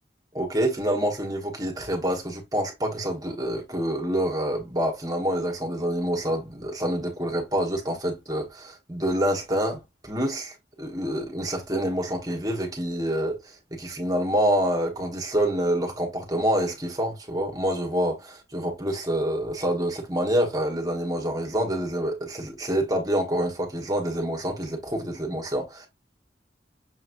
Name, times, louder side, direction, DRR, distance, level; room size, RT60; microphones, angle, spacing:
voice 1, 0.3-13.4 13.7-25.9, equal, 20° right, 1.3 m, -27 dB
6.5 x 3.1 x 2.5 m
head